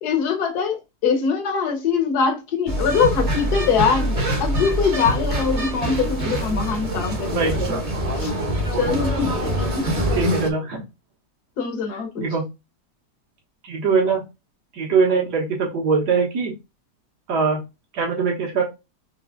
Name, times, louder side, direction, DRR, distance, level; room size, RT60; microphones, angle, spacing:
voice 1, 0.0-7.8 8.1-8.3 8.7-9.9 11.6-12.2, left 6 dB, 70° left, 1.6 m, -23 dB
sound 1, 2.7-10.5, equal, 30° right, 0.8 m, -24 dB
voice 2, 7.3-7.7 10.1-10.8 12.2-12.5 13.6-14.2 14.7-16.6 17.3-17.6 17.9-18.6, right 5 dB, 75° right, 1.8 m, -22 dB
4.7 x 3.1 x 3.6 m
omnidirectional pair, 1.8 m